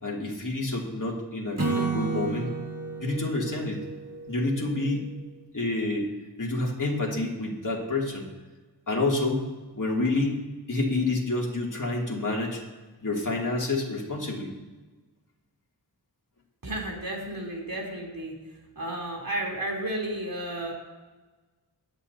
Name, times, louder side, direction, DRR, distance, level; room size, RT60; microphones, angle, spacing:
voice 1, 0.0-2.5 3.0-3.8 4.3-5.1 5.5-6.1 6.4-8.3 8.9-9.5 9.8-10.4 10.7-12.6 13.0-14.5, left 2 dB, 50° left, -2 dB, 2.7 m, -28 dB
Acoustic guitar / Strum, 1.6-4.9, right 4 dB, 40° right, 2.0 m, -32 dB
voice 2, 16.6-18.4 18.8-20.7, right 1 dB, 55° right, -1 dB, 3.5 m, -32 dB
22.5 x 8.8 x 2.8 m, 1.2 s
wide cardioid pair, 65°, 41 cm